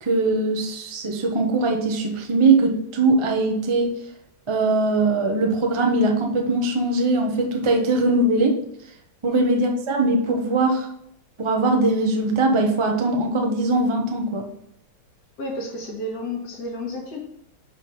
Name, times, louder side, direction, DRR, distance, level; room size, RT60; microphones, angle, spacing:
voice 1, 0.0-3.9 4.5-8.6 9.2-10.9 11.4-14.5, right 2 dB, 50° right, 2 dB, 0.3 m, -21 dB
voice 2, 9.3-9.6 15.4-17.2, left 1 dB, 55° left, -4 dB, 2.0 m, -32 dB
5.2 x 5.1 x 5.5 m, 0.73 s
omnidirectional pair, 2.2 m